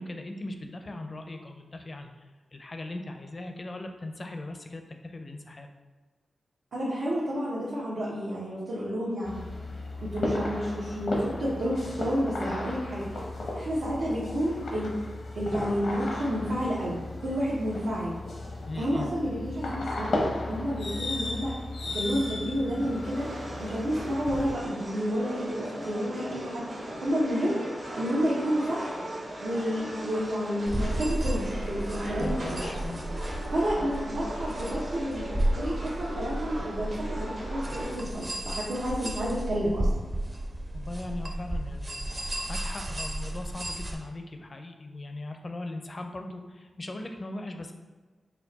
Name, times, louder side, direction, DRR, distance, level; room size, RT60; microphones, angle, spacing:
voice 1, 0.0-2.1 2.5-5.7 18.7-19.1 32.2-33.0 33.8-33.9 40.7-47.7, left 2 dB, 40° left, 5 dB, 0.4 m, -39 dB
voice 2, 6.7-9.5 10.0-13.2 13.6-14.9 15.3-18.2 18.8-21.5 21.9-23.3 23.6-26.7 27.0-27.6 28.0-29.0 29.4-32.7 33.5-35.2 35.5-39.9, equal, 85° right, -9 dB, 0.9 m, -30 dB
sound 1, 9.2-24.6, left 2 dB, 80° left, 0.7 m, -35 dB
sound 2, 22.7-37.9, right 1 dB, 60° right, 0.9 m, -39 dB
sound 3, 30.7-43.9, right 1 dB, 30° right, 0.6 m, -33 dB
4.4 x 2.2 x 4.0 m, 1.3 s
cardioid pair, 70°, 0 cm